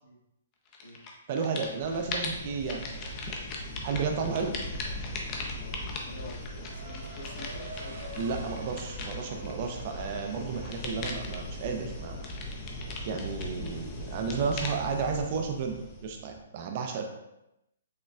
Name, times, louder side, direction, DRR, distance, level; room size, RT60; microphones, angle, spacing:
sound 1, 0.7-1.1 1.4-16.4, left 2 dB, 25° left, 0.5 m, -38 dB
voice 1, 1.3-3.3 3.8-4.6 8.2-12.2 13.0-17.0, right 5 dB, 35° right, 4 dB, 0.4 m, -32 dB
voice 2, 4.2-4.5 5.5-8.0 12.8-13.0, left 1 dB, 75° left, -2 dB, 1.1 m, -47 dB
sound 2, 6.6-12.2, right 2 dB, 65° right, 0.8 m, -47 dB
6.3 x 2.2 x 2.4 m, 0.88 s
hypercardioid pair, 165°, 0 cm